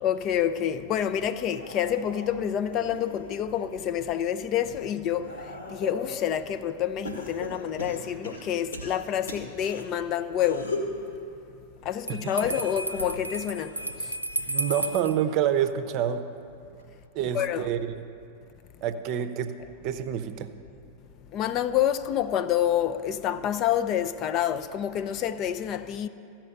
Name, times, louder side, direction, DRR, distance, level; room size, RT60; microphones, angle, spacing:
voice 1, 0.0-5.3 5.7-10.7 11.8-13.8 14.0-14.1 17.3-17.7 21.3-26.1, left 10 dB, 35° left, 0.4 m, -28 dB
sound 1, 1.4-3.7 4.2-6.2 7.0-9.8 10.3-11.0 12.2-15.0 15.4-15.8 17.0-17.1, left 2 dB, 75° left, 1.7 m, -39 dB
Bell, 12.1-15.2, right 1 dB, 85° right, 0.5 m, -33 dB
voice 2, 14.5-16.3 17.1-17.8 18.8-20.5, right 9 dB, 40° right, 0.7 m, -27 dB
14.5 x 5.9 x 8.1 m
figure-of-eight pair, 90°, 0 cm